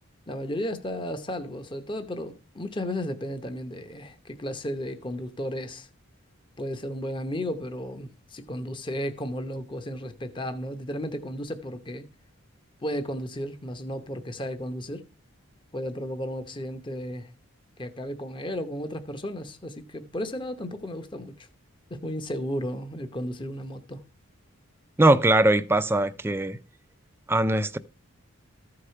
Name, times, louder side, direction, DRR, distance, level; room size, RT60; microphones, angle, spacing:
voice 1, 0.3-5.9 6.6-12.1 12.8-15.0 15.7-17.3 17.8-21.5 21.9-24.0, equal, 20° left, 0.8 m, -34 dB
voice 2, 25.0-26.6 27.3-27.8, right 1 dB, 10° right, 0.4 m, -21 dB
14.0 x 4.8 x 5.7 m
head